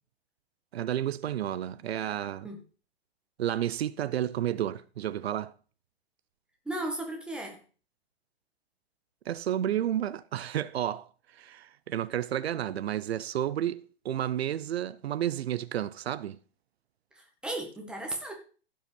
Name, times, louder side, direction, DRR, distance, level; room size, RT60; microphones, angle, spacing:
voice 1, 0.7-2.5 3.4-5.5 9.3-16.4, right 11 dB, 80° right, 0.7 m, -31 dB
voice 2, 6.6-7.6 17.4-18.3, right 1 dB, 5° right, 1.8 m, -35 dB
15.5 x 5.7 x 5.3 m
hypercardioid pair, 160°, 31 cm